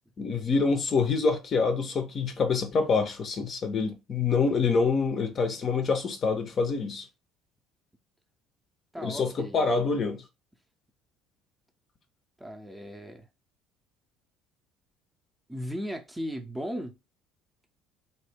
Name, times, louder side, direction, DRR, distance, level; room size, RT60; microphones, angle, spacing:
voice 1, 0.2-7.1 9.0-10.2, left 4 dB, 40° left, 0.6 m, -26 dB
voice 2, 8.9-9.8 12.4-13.3 15.5-17.0, equal, 10° right, 0.6 m, -37 dB
2.7 x 2.2 x 3.3 m
figure-of-eight pair, 55°, 0 cm